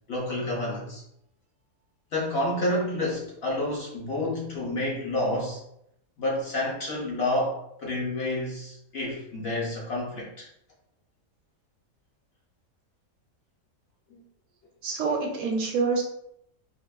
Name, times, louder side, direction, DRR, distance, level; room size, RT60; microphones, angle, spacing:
voice 1, 0.1-1.0 2.1-5.6 6.2-10.5 14.1-14.2, left 1 dB, 55° left, -4 dB, 0.8 m, -29 dB
voice 2, 14.8-16.0, right 4 dB, 70° right, 1 dB, 1.0 m, -26 dB
3.4 x 2.5 x 2.3 m, 0.75 s
omnidirectional pair, 1.5 m